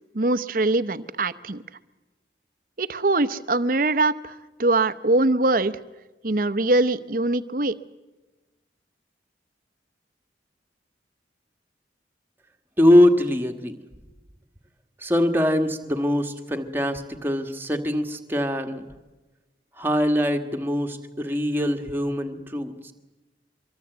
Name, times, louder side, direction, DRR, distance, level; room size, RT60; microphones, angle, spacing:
voice 1, 0.1-1.6 2.8-4.3 4.6-5.8 6.2-7.7, right 2 dB, 50° right, 14 dB, 0.8 m, -22 dB
voice 2, 12.8-13.8 15.0-18.9 19.8-22.9, left 1 dB, 10° right, 4 dB, 1.6 m, -22 dB
24.5 x 23.0 x 8.1 m, 1.1 s
head